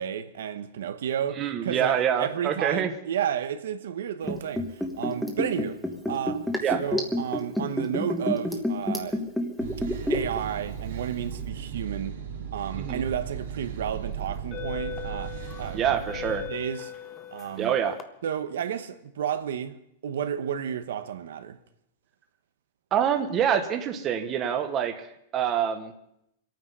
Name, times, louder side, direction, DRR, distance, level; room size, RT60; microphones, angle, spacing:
voice 1, 0.0-9.2 10.1-12.2 12.5-15.8 16.5-16.9 17.3-17.7 18.2-19.8 20.0-21.6, right 9 dB, 90° right, 1.0 m, -32 dB
voice 2, 1.4-2.9 6.6-6.8 12.8-13.0 15.7-16.4 17.6-18.0 22.9-25.1 25.3-25.9, right 9 dB, 20° right, 1.0 m, -26 dB
Liquid, 4.2-10.4 10.7-10.8, left 1 dB, ahead, 1.2 m, -28 dB
sound 1, 9.6-16.5, right 8 dB, 70° right, 2.3 m, -36 dB
sound 2, 13.2-13.5 14.2-18.0, left 10 dB, 20° left, 0.7 m, -39 dB
25.5 x 9.2 x 5.5 m
supercardioid pair, 175°, 0 cm